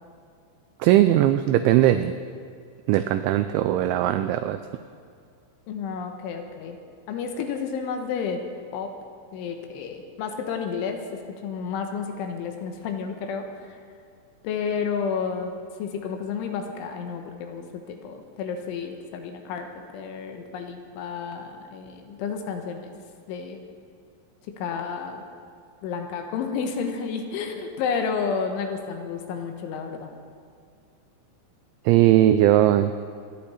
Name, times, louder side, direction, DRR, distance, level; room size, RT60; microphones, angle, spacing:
voice 1, 0.8-2.1 2.9-4.6 31.9-32.9, right 13 dB, 90° right, 10 dB, 2.6 m, -19 dB
voice 2, 5.7-6.8 7.1-8.4 8.7-8.9 9.3-13.8 14.4-15.5 15.8-22.9 23.3-23.6 24.6-25.2 25.8-30.1, left 6 dB, 75° left, 5 dB, 3.2 m, -31 dB
26.0 x 10.5 x 4.2 m, 2.2 s
omnidirectional pair, 5.8 m